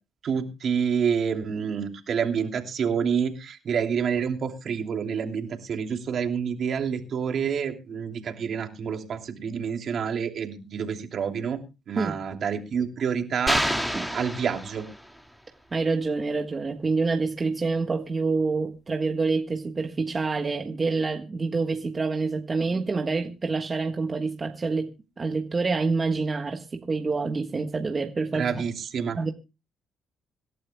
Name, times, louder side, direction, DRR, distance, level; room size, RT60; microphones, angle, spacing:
voice 1, 0.2-11.6 11.9-14.9 28.3-29.2, right 7 dB, 60° right, 3.0 m, -28 dB
sound 1, 13.5-15.2, equal, 5° left, 2.1 m, -28 dB
voice 2, 15.7-28.6 29.1-29.3, right 4 dB, 30° right, 1.4 m, -27 dB
26.0 x 12.0 x 2.2 m
cardioid pair, 90°, 0 cm